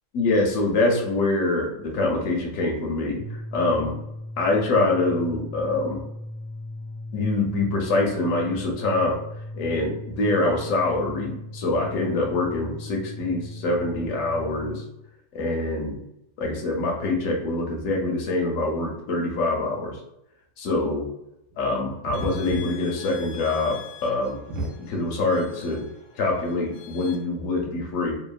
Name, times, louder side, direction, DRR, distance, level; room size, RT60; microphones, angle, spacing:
voice 1, 0.1-4.0 4.4-6.0 7.1-9.2 9.5-14.8 15.3-16.0 16.4-20.0 20.6-21.1 21.6-24.4 24.8-25.9 26.2-28.2, left 2 dB, 70° left, 0 dB, 1.0 m, -25 dB
sound 1, 3.0-14.9, left 1 dB, 50° left, 0.6 m, -38 dB
sound 2, 21.5-21.6 21.9-23.2 23.6-23.7 24.0-24.1 24.5-25.2 25.9-26.0, right 1 dB, 70° right, 0.9 m, -32 dB
sound 3, 22.1-27.2, left 9 dB, 90° left, 1.1 m, -45 dB
2.8 x 2.1 x 2.3 m, 0.85 s
omnidirectional pair, 1.6 m